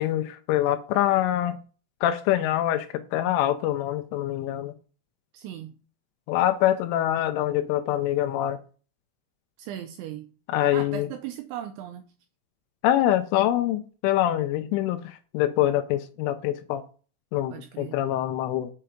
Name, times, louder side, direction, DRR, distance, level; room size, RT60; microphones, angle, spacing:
voice 1, 0.0-1.6 2.0-4.7 6.3-8.6 10.5-11.1 12.8-16.8 17.3-18.7, left 13 dB, 85° left, 2.9 m, -25 dB
voice 2, 5.3-5.8 9.6-10.3 10.7-12.1 17.5-18.0, right 11 dB, 85° right, 2.7 m, -37 dB
6.7 x 5.6 x 5.0 m
omnidirectional pair, 5.9 m